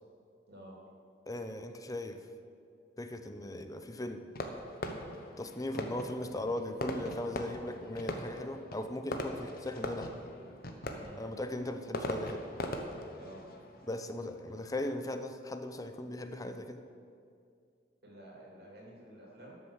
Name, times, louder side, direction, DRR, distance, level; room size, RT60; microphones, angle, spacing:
voice 1, 1.3-2.2 3.0-4.2 5.4-10.1 11.2-12.4 13.8-16.8, left 1 dB, 20° left, 8 dB, 0.7 m, -38 dB
Fireworks, 4.3-14.9, left 1 dB, 60° left, 1.1 m, -41 dB
voice 2, 18.0-19.6, right 1 dB, 65° right, -2 dB, 2.9 m, -51 dB
12.5 x 6.9 x 7.3 m, 2.4 s
head